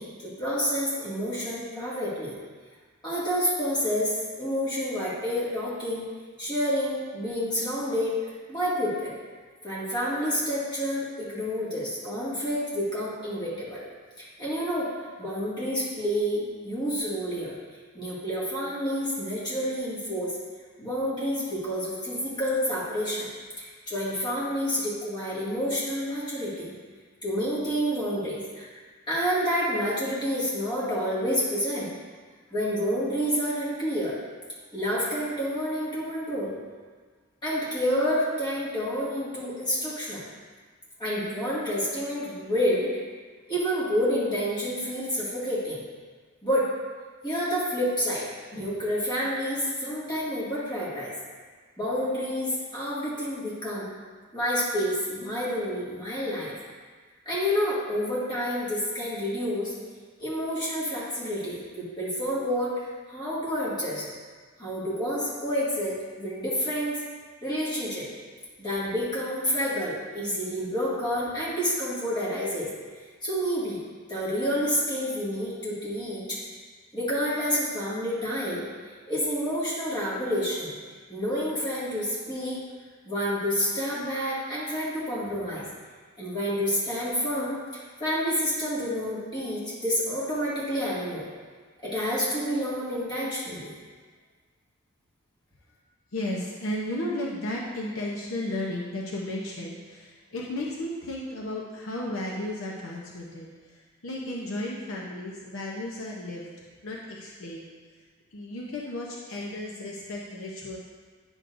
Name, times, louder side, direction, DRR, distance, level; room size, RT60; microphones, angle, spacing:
voice 1, 0.0-2.3 3.0-6.0 6.4-9.2 9.6-13.8 14.2-17.5 17.9-20.4 20.8-23.3 23.6-26.7 27.2-31.9 32.5-34.1 34.7-36.5 37.4-40.2 41.0-42.9 43.5-45.8 46.4-46.7 47.2-51.1 51.8-53.9 54.3-56.5 57.3-59.7 60.2-64.1 64.6-67.0 67.4-68.1 68.6-72.7 73.2-73.8 74.1-76.4 76.9-78.6 79.1-80.7 81.1-82.6 83.1-85.7 86.2-91.3 91.8-93.7, equal, 20° left, -9 dB, 2.0 m, -29 dB
voice 2, 96.1-106.5 106.8-107.7 108.3-110.8, left 1 dB, 65° left, -3 dB, 0.7 m, -34 dB
9.2 x 6.2 x 2.6 m, 1.5 s
head